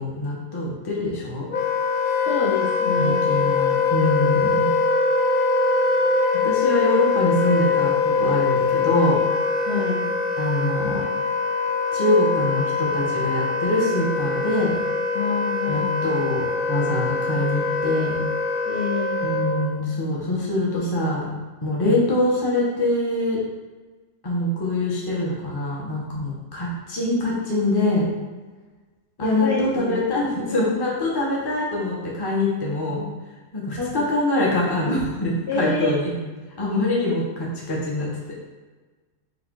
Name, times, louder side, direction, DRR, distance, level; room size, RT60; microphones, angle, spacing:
voice 1, 0.0-1.5 3.0-4.7 6.4-9.2 10.4-11.0 11.9-14.7 15.7-18.2 19.2-21.3 21.6-23.4 24.2-28.0 29.2-33.1 33.5-36.1 36.6-38.4, left 1 dB, 20° left, -4 dB, 0.7 m, -24 dB
Wind instrument woodwind instrument, 1.5-19.7, left 4 dB, 85° left, 1.2 m, -23 dB
voice 2, 2.3-3.2 9.7-10.1 15.1-16.2 18.7-19.2 29.2-30.1 30.5-30.6 33.8-33.9 35.5-36.0, left 3 dB, 60° left, -5 dB, 0.7 m, -27 dB
4.1 x 2.5 x 4.5 m, 1.3 s
omnidirectional pair, 1.5 m